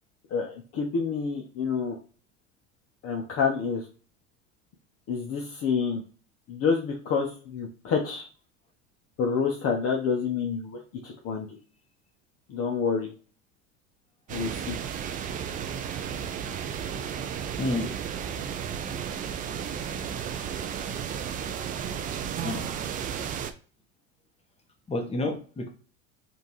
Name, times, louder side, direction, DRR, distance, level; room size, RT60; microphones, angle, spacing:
voice 1, 0.3-2.0 3.0-3.9 5.1-6.0 6.5-8.3 9.2-11.6 12.5-13.1 14.3-14.8, left 5 dB, 40° left, 1 dB, 0.8 m, -28 dB
sound 1, 14.3-23.5, right 8 dB, 25° right, 0.3 m, -33 dB
voice 2, 24.9-25.7, left 2 dB, 15° left, 3 dB, 1.1 m, -29 dB
5.1 x 2.6 x 3.0 m, 0.39 s
supercardioid pair, 105°, 37 cm